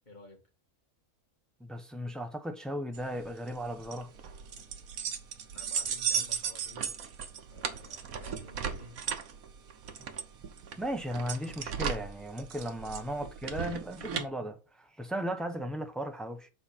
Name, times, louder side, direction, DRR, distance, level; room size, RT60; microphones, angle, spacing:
voice 1, 0.1-0.4 5.5-7.0 7.5-9.0 12.8-13.0, left 1 dB, 30° left, 2.2 m, -52 dB
voice 2, 1.6-4.1 10.8-16.5, equal, ahead, 0.5 m, -36 dB
sound 1, 2.9-14.3, right 7 dB, 75° right, 1.4 m, -36 dB
6.8 x 4.3 x 5.6 m
omnidirectional pair, 1.5 m